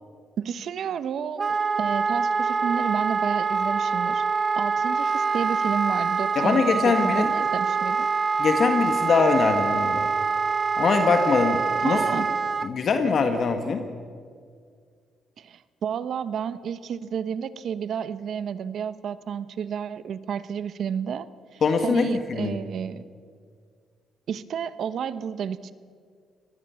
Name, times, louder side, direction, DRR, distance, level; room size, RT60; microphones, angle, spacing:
voice 1, 0.4-4.2 4.6-8.1 11.8-12.3 15.4-21.3 21.5-23.0 24.3-25.7, right 8 dB, 65° right, 15 dB, 1.0 m, -31 dB
Wind instrument woodwind instrument, 1.4-12.7, right 4 dB, 35° right, 0.8 m, -25 dB
voice 2, 6.3-7.3 8.4-10.1 10.8-12.0 12.6-13.8 21.6-22.6, left 5 dB, 55° left, 6 dB, 1.6 m, -22 dB
24.5 x 19.5 x 7.1 m, 2.1 s
cardioid pair, 90°, 0 cm